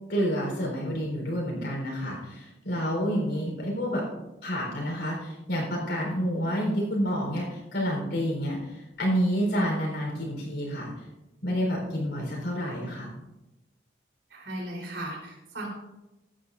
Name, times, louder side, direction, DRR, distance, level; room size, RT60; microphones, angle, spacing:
voice 1, 0.1-4.0 4.4-10.9 11.4-13.1, equal, 70° left, -2 dB, 4.0 m, -29 dB
voice 2, 14.3-15.7, right 1 dB, 75° right, -1 dB, 3.8 m, -36 dB
16.0 x 10.5 x 2.6 m, 0.95 s
head